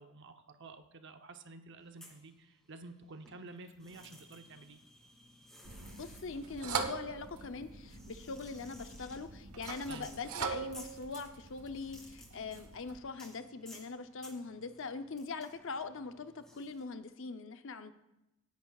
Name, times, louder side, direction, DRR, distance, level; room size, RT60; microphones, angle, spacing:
voice 1, 0.0-4.8 9.9-10.1, right 3 dB, 55° right, 7 dB, 0.8 m, -51 dB
sound 1, 1.8-2.9 3.2-16.8, equal, 5° left, 2.5 m, -58 dB
sound 2, 5.6-13.0, right 5 dB, 85° right, 1.1 m, -42 dB
voice 2, 5.9-17.9, left 4 dB, 60° left, 9 dB, 0.7 m, -42 dB
25.5 x 10.5 x 2.4 m, 0.93 s
head